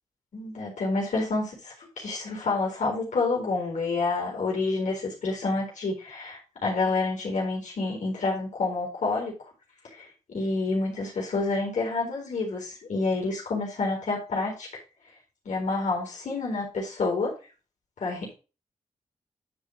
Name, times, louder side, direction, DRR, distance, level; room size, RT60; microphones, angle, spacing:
voice 1, 0.3-9.3 9.9-14.7 15.4-17.3 18.0-18.3, left 3 dB, 85° left, -1 dB, 4.1 m, -28 dB
11.0 x 4.2 x 5.0 m, 0.31 s
wide cardioid pair, 85°, 12 cm